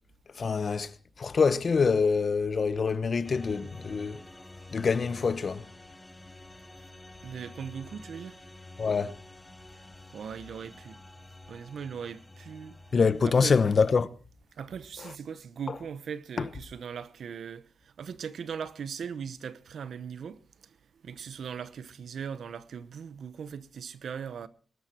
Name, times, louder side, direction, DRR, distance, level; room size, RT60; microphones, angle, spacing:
voice 1, 0.3-0.9 1.2-4.2 4.7-5.7 8.8-9.1 12.9-14.1, left 5 dB, 50° left, 1.0 m, -25 dB
sound 1, 3.2-14.0, left 2 dB, 15° left, 1.4 m, -49 dB
voice 2, 7.2-8.4 10.1-11.0 11.5-12.8 13.2-13.6 14.6-20.7 21.0-24.5, right 7 dB, 75° right, 1.0 m, -39 dB
22.0 x 12.5 x 4.5 m
cardioid pair, 85°, 0 cm